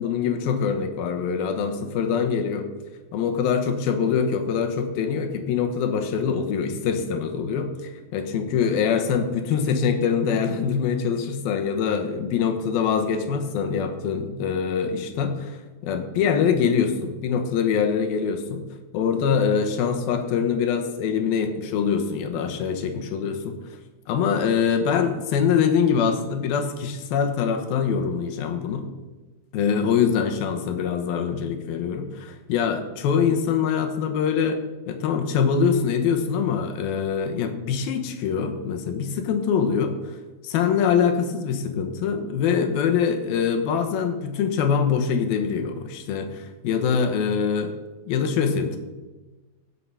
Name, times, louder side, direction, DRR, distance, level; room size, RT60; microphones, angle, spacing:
voice 1, 0.0-2.7 3.1-15.6 15.8-18.6 18.9-23.6 24.1-28.9 29.5-34.6 34.9-40.2 40.4-47.7 48.1-48.8, left 6 dB, 90° left, 6 dB, 3.0 m, -24 dB
16.5 x 7.5 x 5.6 m, 1.2 s
omnidirectional pair, 4.1 m